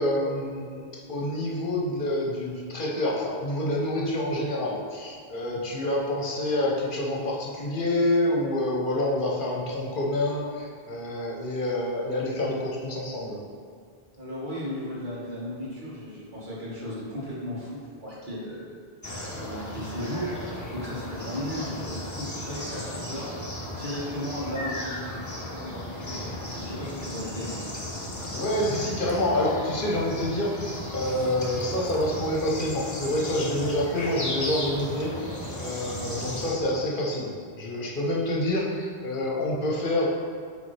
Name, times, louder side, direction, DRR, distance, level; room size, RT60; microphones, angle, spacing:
voice 1, 0.0-13.4 28.3-35.2 35.6-40.1, left 1 dB, 55° left, -3 dB, 1.1 m, -27 dB
voice 2, 14.2-18.8 19.0-23.3 23.7-25.0 25.5-26.2 26.5-27.7, equal, 50° right, -8 dB, 1.8 m, -35 dB
sound 1, 19.0-36.5, left 1 dB, 20° left, 0.8 m, -35 dB
8.4 x 3.4 x 3.3 m, 2.1 s
omnidirectional pair, 1.0 m